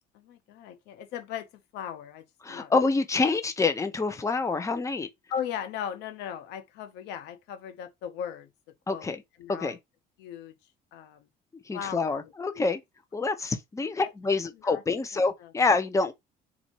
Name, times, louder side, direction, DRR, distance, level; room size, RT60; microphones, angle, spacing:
voice 1, 0.1-2.7 5.3-8.5 8.9-9.1 9.4-9.8 10.2-10.5 10.9-11.3 11.7-12.7 14.0-14.1 14.5-14.8 15.1-15.5, left 8 dB, 90° left, 0.9 m, -38 dB
voice 2, 2.4-5.1 8.9-9.2 9.5-9.8 11.7-12.8 13.1-16.1, left 3 dB, 20° left, 0.8 m, -27 dB
4.3 x 2.7 x 4.4 m
cardioid pair, 110°, 17 cm